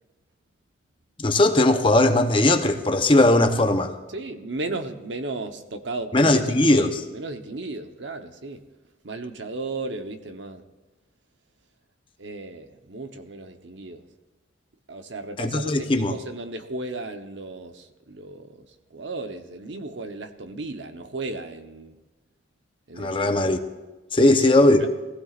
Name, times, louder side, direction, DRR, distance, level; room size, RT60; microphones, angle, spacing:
voice 1, 1.2-3.9 6.1-7.0 15.4-16.1 23.0-23.6 24.1-24.8, left 1 dB, 25° left, 0.8 m, -19 dB
voice 2, 4.1-8.6 9.0-10.6 12.2-14.0 14.9-22.0 22.9-23.4 24.2-24.9, right 2 dB, 75° right, 1.0 m, -35 dB
21.0 x 15.5 x 2.5 m
head